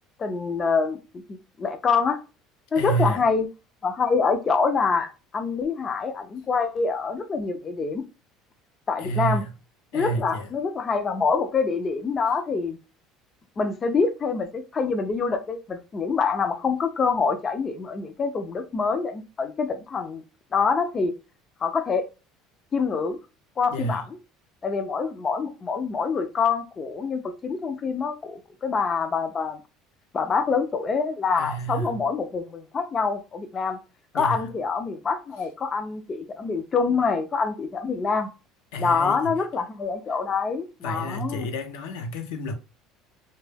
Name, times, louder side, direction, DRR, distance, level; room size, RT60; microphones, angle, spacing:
voice 1, 0.2-1.0 1.3-2.2 2.7-3.5 3.8-8.0 8.9-9.4 9.9-12.8 13.6-20.2 20.5-21.1 21.6-22.1 22.7-23.2 23.6-24.0 24.6-29.6 30.1-33.8 34.1-38.3 38.8-41.4, left 5 dB, 25° left, 0.3 m, -25 dB
voice 2, 2.7-3.3 9.0-9.5 9.9-10.5 23.7-24.1 31.4-32.0 34.1-34.5 38.7-39.4 40.8-42.5, right 2 dB, 90° left, 0.5 m, -29 dB
2.1 x 2.1 x 3.2 m
cardioid pair, 140°, 0 cm